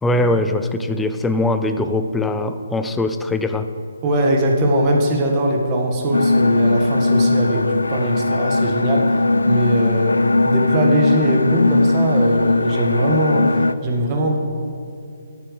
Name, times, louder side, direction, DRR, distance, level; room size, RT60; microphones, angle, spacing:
voice 1, 0.0-3.7, left 2 dB, 5° left, 8 dB, 0.5 m, -21 dB
voice 2, 4.0-10.1 10.4-14.4, right 1 dB, 25° right, 1 dB, 1.7 m, -20 dB
sound 1, 6.1-13.7, left 2 dB, 75° left, 0.3 m, -18 dB
11.0 x 8.2 x 6.6 m, 2.4 s
figure-of-eight pair, 140°, 0 cm